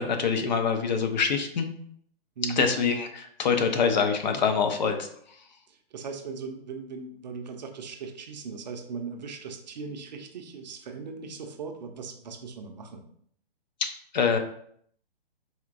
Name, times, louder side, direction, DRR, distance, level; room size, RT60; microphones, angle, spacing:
voice 1, 0.0-1.7 2.6-5.1 14.1-14.4, left 6 dB, 45° left, 6 dB, 0.5 m, -25 dB
voice 2, 2.4-2.7 5.7-13.0, right 5 dB, 45° right, 5 dB, 0.5 m, -38 dB
4.2 x 2.5 x 2.5 m, 0.65 s
figure-of-eight pair, 130°, 31 cm